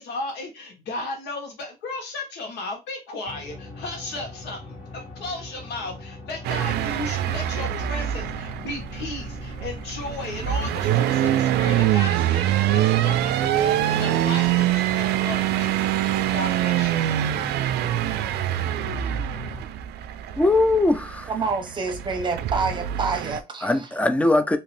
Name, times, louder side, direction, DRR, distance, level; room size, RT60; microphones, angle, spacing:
voice 1, 0.0-16.9, left 2 dB, 85° left, 1.3 m, -35 dB
sound 1, 3.3-19.6, left 2 dB, 40° left, 2.0 m, -40 dB
sound 2, 6.4-23.4, right 12 dB, 75° right, 0.4 m, -24 dB
voice 2, 20.3-21.3 23.6-24.6, left 2 dB, 10° left, 0.4 m, -20 dB
voice 3, 21.3-23.9, right 4 dB, 25° right, 0.9 m, -27 dB
2.9 x 2.8 x 3.1 m
cardioid pair, 110°, 17 cm